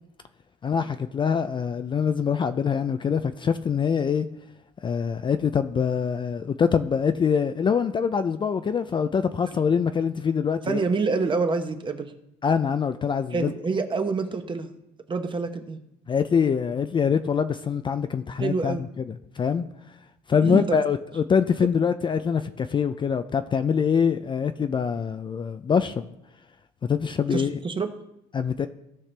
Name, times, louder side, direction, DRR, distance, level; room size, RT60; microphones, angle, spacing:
voice 1, 0.6-4.3 4.8-10.8 12.4-13.5 16.1-18.8 19.4-19.7 20.3-26.1 26.9-27.6 28.3-28.7, left 6 dB, 30° left, 10 dB, 0.4 m, -24 dB
voice 2, 10.7-12.1 13.3-14.7 15.1-15.8 18.4-18.8 20.4-20.8 27.3-28.0, right 4 dB, 30° right, 7 dB, 1.0 m, -27 dB
16.5 x 5.7 x 3.3 m, 0.85 s
cardioid pair, 110°, 17 cm